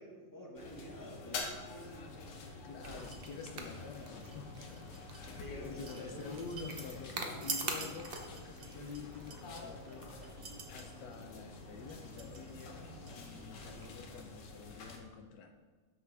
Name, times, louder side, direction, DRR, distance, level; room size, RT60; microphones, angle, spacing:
voice 1, 0.0-2.1 5.3-6.2 6.9-7.3, left 1 dB, 20° left, -2 dB, 0.6 m, -49 dB
sound 1, 0.6-15.0, left 3 dB, 90° left, 2.0 m, -48 dB
voice 2, 2.6-10.1 10.7-15.5, left 5 dB, 65° left, 5 dB, 1.1 m, -48 dB
sound 2, 2.8-13.9, right 3 dB, 75° right, 0.5 m, -46 dB
7.4 x 6.1 x 4.7 m, 1.5 s
omnidirectional pair, 2.4 m